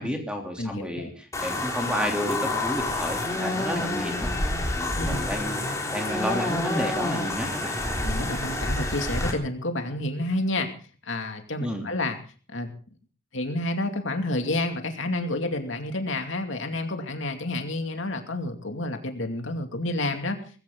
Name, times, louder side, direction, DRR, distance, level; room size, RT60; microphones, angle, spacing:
voice 1, 0.0-4.3 4.7-5.6 5.9-7.7 11.6-11.9, equal, 5° right, 2 dB, 3.3 m, -31 dB
voice 2, 0.6-1.1 4.9-5.2 8.0-10.7 11.0-12.2 12.5-12.7 13.3-20.4, left 2 dB, 65° left, 5 dB, 2.6 m, -29 dB
sound 1, 1.3-9.3, left 2 dB, 15° left, 3.4 m, -28 dB
20.0 x 16.0 x 3.9 m, 0.38 s
head